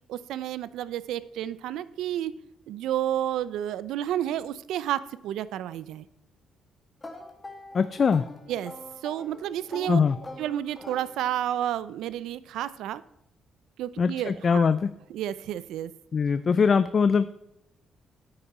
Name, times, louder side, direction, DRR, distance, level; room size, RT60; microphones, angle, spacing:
voice 1, 0.1-2.4 2.7-6.0 8.5-8.7 9.0-10.0 10.4-13.0 13.8-14.7 15.1-15.9, right 11 dB, 85° right, 17 dB, 0.5 m, -31 dB
sound 1, 7.0-11.6, left 2 dB, 20° left, 1.9 m, -44 dB
voice 2, 7.7-8.3 9.9-10.2 14.0-14.9 16.1-17.3, left 5 dB, 45° left, 13 dB, 0.4 m, -22 dB
9.4 x 8.8 x 4.2 m, 0.82 s
cardioid pair, 90°, 0 cm